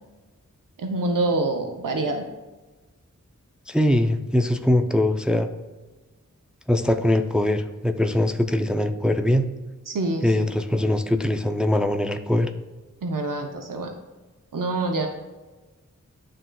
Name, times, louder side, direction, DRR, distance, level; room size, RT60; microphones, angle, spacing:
voice 1, 0.8-2.2 9.9-10.4 13.0-13.9 14.5-15.1, right 2 dB, 80° right, 3 dB, 0.7 m, -26 dB
voice 2, 3.7-5.5 6.7-9.5 10.2-12.5, left 1 dB, 5° right, 7 dB, 0.4 m, -22 dB
11.0 x 3.7 x 2.2 m, 1.2 s
wide cardioid pair, 60°, 32 cm